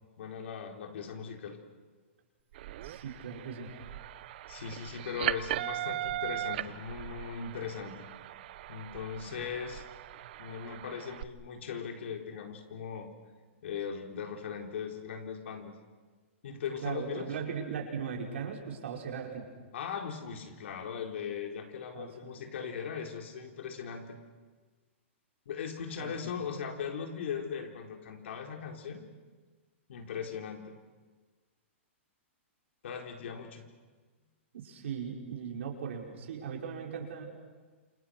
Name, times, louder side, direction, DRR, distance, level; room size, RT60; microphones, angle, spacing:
voice 1, 0.2-1.6 4.5-8.1 8.7-9.9 10.4-13.1 13.6-15.7 16.4-17.3 19.7-24.2 25.5-29.0 29.9-30.7 32.8-33.6, left 7 dB, 65° left, 3 dB, 4.1 m, -39 dB
sound 1, 2.5-11.2, right 13 dB, 50° right, 0.8 m, -39 dB
voice 2, 2.8-3.7 16.8-19.4 21.9-22.4 26.0-26.2 34.5-37.3, right 7 dB, 65° right, 0 dB, 5.6 m, -38 dB
28.0 x 26.0 x 6.5 m, 1.4 s
hypercardioid pair, 155°, 7 cm